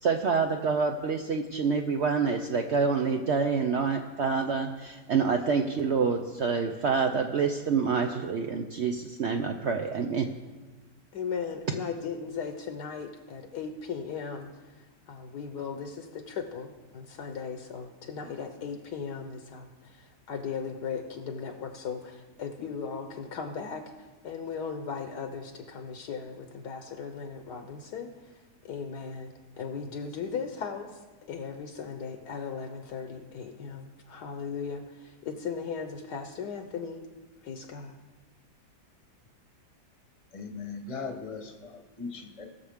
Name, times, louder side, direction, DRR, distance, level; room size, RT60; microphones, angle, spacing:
voice 1, 0.0-10.3, right 5 dB, 70° right, 5 dB, 0.6 m, -27 dB
voice 2, 11.1-14.5 15.1-28.1 28.6-37.0 37.4-38.0, left 6 dB, 70° left, 6 dB, 1.3 m, -37 dB
voice 3, 40.3-42.4, left 4 dB, 25° left, 3 dB, 0.9 m, -39 dB
20.0 x 6.8 x 3.6 m, 1.2 s
omnidirectional pair, 1.9 m